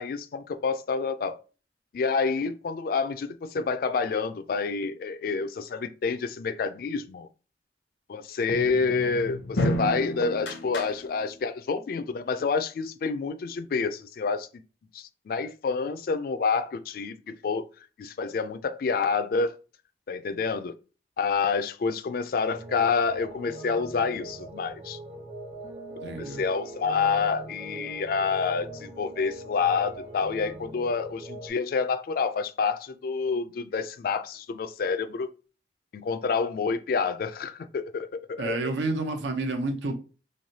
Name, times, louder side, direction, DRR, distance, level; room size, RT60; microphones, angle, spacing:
voice 1, 0.0-1.4 1.9-7.3 8.1-14.5 14.9-17.6 18.0-19.6 20.1-20.7 21.2-25.0 26.1-35.3 35.9-38.6, left 5 dB, 55° left, 0.3 m, -28 dB
sound 1, 8.5-11.5, left 1 dB, 85° left, 0.7 m, -31 dB
sound 2, 22.4-31.5, right 1 dB, 40° right, 0.9 m, -41 dB
voice 2, 26.0-26.4 38.4-40.0, right 2 dB, 85° right, 0.7 m, -29 dB
3.2 x 2.6 x 2.7 m
head